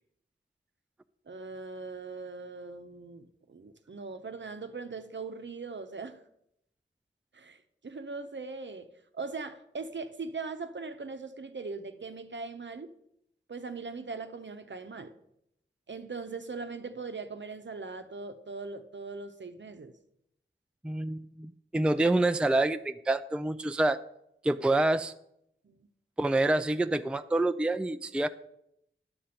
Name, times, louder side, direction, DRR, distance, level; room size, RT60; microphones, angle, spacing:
voice 1, 1.3-6.2 7.3-8.9 9.1-12.9 13.5-15.1 15.9-19.9 25.6-25.9, right 4 dB, 60° right, 0.8 m, -40 dB
voice 2, 20.8-24.0 24.4-25.1 26.2-28.3, right 2 dB, 5° right, 0.4 m, -27 dB
10.5 x 4.3 x 7.7 m
wide cardioid pair, 55°, 21 cm